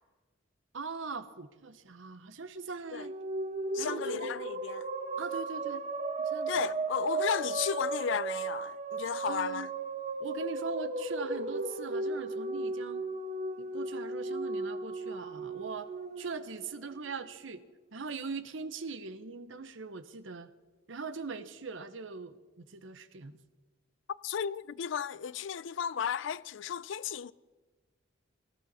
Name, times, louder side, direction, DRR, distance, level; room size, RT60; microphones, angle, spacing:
voice 1, 0.7-3.2 3.8-4.3 5.2-5.8 6.2-6.5 9.2-9.7 10.2-13.0 13.6-15.9 16.2-17.6 17.9-20.5 20.9-23.4, right 4 dB, 70° right, 0.9 m, -41 dB
sound 1, 2.8-17.3, right 3 dB, 35° right, 1.1 m, -36 dB
voice 2, 3.7-4.9 6.5-9.7 24.2-27.3, left 7 dB, 65° left, 0.4 m, -34 dB
18.5 x 13.5 x 4.2 m
head